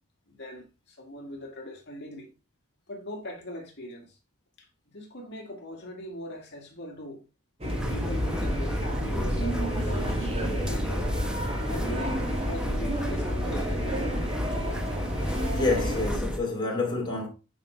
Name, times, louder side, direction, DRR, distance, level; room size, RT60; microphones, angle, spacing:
voice 1, 0.3-2.3 2.9-4.2 4.6-7.2 7.9-11.1 11.7-14.2, left 1 dB, 55° left, 2.1 m, -41 dB
sound 1, 7.6-16.2, equal, 30° right, 2.3 m, -31 dB
sound 2, 7.7-16.4, equal, 5° right, 0.9 m, -32 dB
voice 2, 15.5-17.3, left 3 dB, 20° left, 3.0 m, -28 dB
9.3 x 5.0 x 3.2 m
head